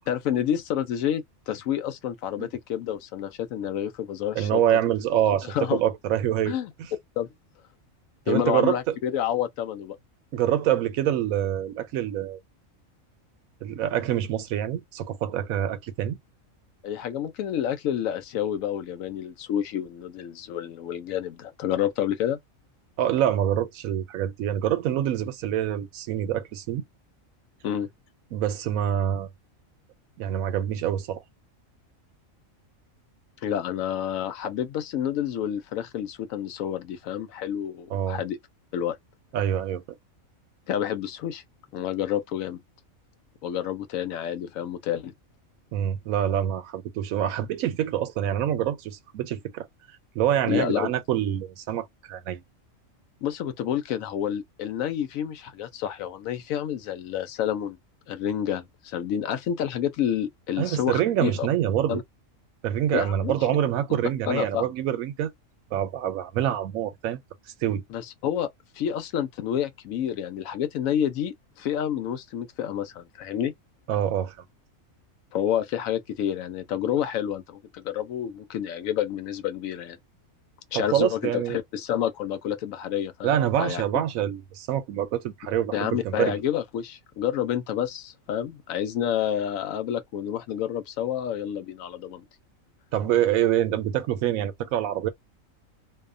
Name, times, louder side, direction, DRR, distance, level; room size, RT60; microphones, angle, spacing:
voice 1, 0.1-4.6 5.4-5.8 6.4-6.7 7.2-7.3 8.3-10.0 16.8-22.4 27.6-27.9 33.4-38.4 38.7-39.0 40.7-41.4 41.7-42.6 43.4-45.1 50.5-50.9 53.2-57.8 58.1-61.5 61.9-62.0 62.9-63.3 64.3-64.7 67.9-68.5 68.8-73.5 75.3-80.0 80.7-83.3 83.6-83.8 85.7-92.2, left 10 dB, 75° left, 1.0 m, -29 dB
voice 2, 4.4-6.6 8.3-9.0 10.3-12.4 13.6-16.2 23.0-26.8 28.3-29.3 30.2-31.2 37.9-38.2 39.3-39.8 45.7-49.7 50.2-52.4 60.6-62.0 62.6-65.3 65.7-67.2 67.6-67.8 73.9-74.4 80.7-81.6 83.2-86.4 92.9-95.1, right 11 dB, 85° right, 1.0 m, -26 dB
2.7 x 2.1 x 2.4 m
omnidirectional pair, 1.4 m